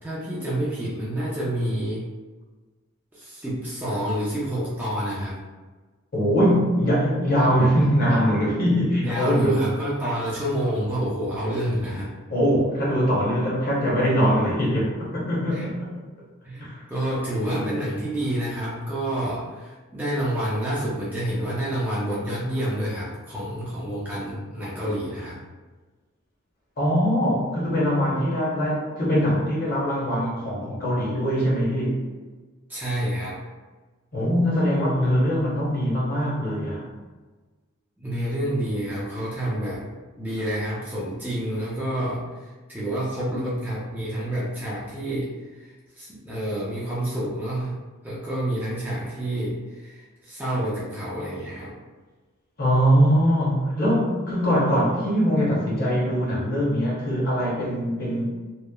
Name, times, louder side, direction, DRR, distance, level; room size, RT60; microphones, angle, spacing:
voice 1, 0.0-2.0 3.1-5.4 9.0-12.1 15.5-15.7 16.4-25.4 32.7-33.4 38.0-39.9 40.2-47.8 48.0-51.7, right 1 dB, 10° right, -8 dB, 0.4 m, -28 dB
voice 2, 6.1-9.7 12.3-15.9 16.6-16.9 17.5-17.6 26.8-32.0 34.1-36.9 52.6-58.3, equal, 45° left, -5 dB, 0.7 m, -22 dB
2.9 x 2.0 x 2.2 m, 1.3 s
head